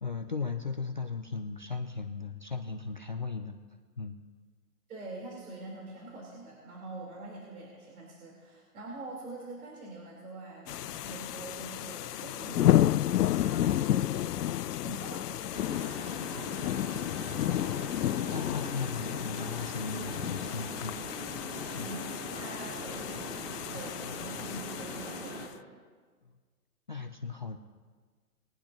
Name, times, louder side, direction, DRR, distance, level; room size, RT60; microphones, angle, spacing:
voice 1, 0.0-3.6 4.0-4.2 16.3-16.5 18.3-21.0 21.7-21.9 23.7-24.5 26.9-27.6, left 4 dB, 35° left, 3 dB, 0.4 m, -37 dB
voice 2, 4.9-15.6 21.7-25.4, right 2 dB, 65° right, -3 dB, 4.1 m, -45 dB
sound 1, 10.7-25.4, left 13 dB, 85° left, 0.5 m, -31 dB
Mechanisms, 15.5-25.5, right 1 dB, 10° right, 1.9 m, -42 dB
22.0 x 10.0 x 2.9 m, 1.5 s
hypercardioid pair, 160°, 46 cm